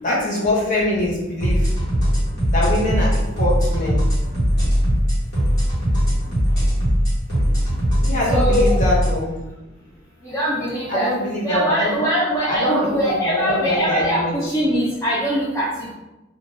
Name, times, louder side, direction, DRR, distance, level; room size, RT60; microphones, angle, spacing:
voice 1, 0.0-1.7 2.5-4.0 8.0-9.3 10.9-12.0 12.5-14.4, left 1 dB, 40° left, -4 dB, 0.9 m, -23 dB
sound 1, 1.4-9.1, equal, 55° left, 1.3 m, -19 dB
voice 2, 8.3-8.8 10.2-11.1 11.4-15.9, equal, 15° left, -8 dB, 0.6 m, -22 dB
3.5 x 2.4 x 2.6 m, 0.99 s
head